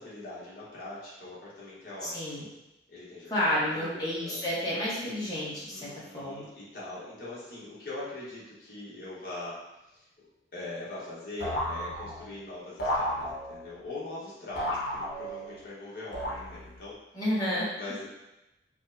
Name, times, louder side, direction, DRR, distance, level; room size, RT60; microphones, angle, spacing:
voice 1, 0.0-2.5 2.9-4.4 5.7-9.6 9.9-17.0 17.8-18.1, left 2 dB, 50° left, -8 dB, 1.2 m, -42 dB
voice 2, 2.0-2.4 3.3-6.5 17.1-17.7, left 1 dB, 20° left, -8 dB, 1.0 m, -30 dB
sound 1, 11.4-12.4 12.8-13.7 14.6-15.6 16.1-16.8, equal, 75° left, 0.9 m, -33 dB
4.6 x 2.1 x 2.6 m, 0.95 s
head